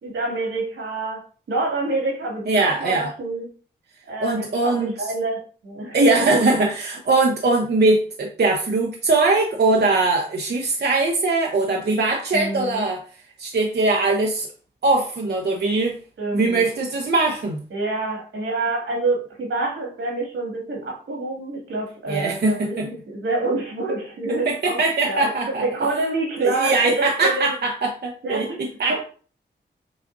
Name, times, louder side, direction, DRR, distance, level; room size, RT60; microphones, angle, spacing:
voice 1, 0.0-3.5 4.1-6.0 12.3-12.9 16.2-16.6 17.7-27.5 28.2-28.6 28.9-29.0, right 2 dB, 85° right, -2 dB, 2.2 m, -27 dB
voice 2, 2.5-3.1 4.2-5.1 5.9-13.0 13.4-14.5 14.8-16.0 16.3-17.6 22.1-22.9 24.5-25.6 26.4-29.0, right 3 dB, 55° right, 1 dB, 0.7 m, -21 dB
6.0 x 2.5 x 2.6 m, 0.39 s
cardioid pair, 40°, 20 cm